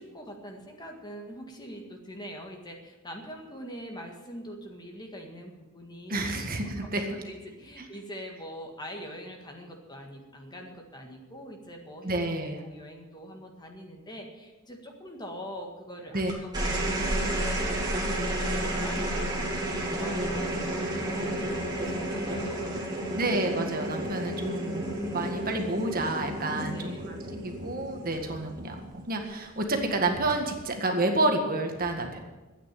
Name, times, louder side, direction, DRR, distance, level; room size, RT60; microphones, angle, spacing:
voice 1, 0.0-6.2 6.8-6.9 7.2-12.2 12.6-20.7 21.1-22.9 26.5-27.1, equal, 20° left, 2 dB, 1.7 m, -43 dB
voice 2, 6.1-7.2 7.8-7.9 12.0-12.6 16.1-16.3 23.1-32.2, right 2 dB, 40° right, 3 dB, 1.8 m, -29 dB
sound 1, 16.3-28.9 30.1-30.6, right 1 dB, 20° right, 2.8 m, -31 dB
12.5 x 9.1 x 9.0 m, 1.2 s
head